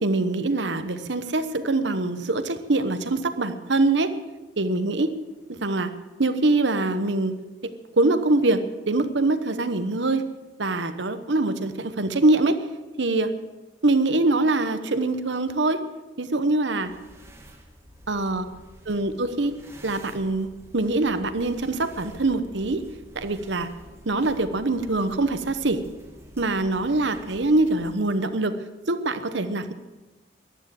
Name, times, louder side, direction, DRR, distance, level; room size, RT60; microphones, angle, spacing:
voice 1, 0.0-4.1 4.6-5.1 5.5-5.9 6.2-10.3 10.6-12.6 13.0-13.3 13.8-15.8 16.2-16.9 18.1-18.5 18.9-19.5 19.8-22.8 23.1-23.7 24.1-25.8 26.4-28.6 28.9-29.7, right 2 dB, 65° right, 10 dB, 1.0 m, -24 dB
sound 1, 16.8-28.0, equal, 15° right, 1.8 m, -48 dB
14.5 x 11.5 x 7.6 m, 1.1 s
head